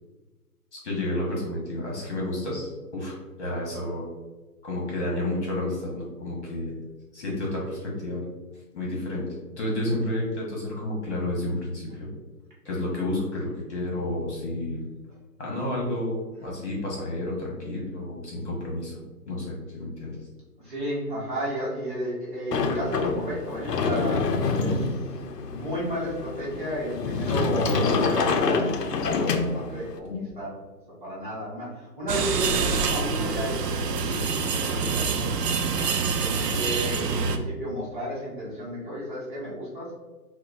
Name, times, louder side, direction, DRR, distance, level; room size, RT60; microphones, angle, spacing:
voice 1, 0.7-4.0 4.6-6.8 7.1-8.2 8.7-9.2 9.6-12.1 12.6-14.8 15.4-20.1, left 1 dB, 45° left, -3 dB, 1.1 m, -30 dB
voice 2, 20.6-24.3 24.6-25.2 25.5-30.5 31.0-35.2 36.2-39.9, equal, 30° right, -7 dB, 0.9 m, -33 dB
Sliding door, 22.5-30.0, left 4 dB, 75° left, 0.6 m, -26 dB
sound 1, 32.1-37.4, right 5 dB, 75° right, 0.5 m, -26 dB
4.3 x 2.2 x 2.5 m, 1.2 s
hypercardioid pair, 160°, 48 cm